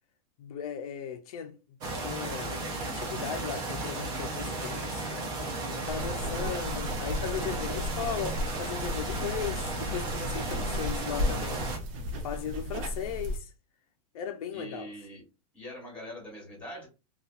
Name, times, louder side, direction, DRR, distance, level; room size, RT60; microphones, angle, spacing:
voice 1, 0.4-1.6 1.9-5.3 5.7-11.7 12.2-13.5 14.1-14.9, left 8 dB, 65° left, 0.5 m, -37 dB
sound 1, 1.8-11.8, right 2 dB, 20° right, 0.4 m, -34 dB
sound 2, 5.8-13.4, left 1 dB, 60° right, 0.8 m, -35 dB
voice 2, 6.0-6.5 14.5-15.2 15.5-16.9, equal, 5° left, 1.1 m, -43 dB
2.7 x 2.3 x 2.4 m
supercardioid pair, 165°, 20 cm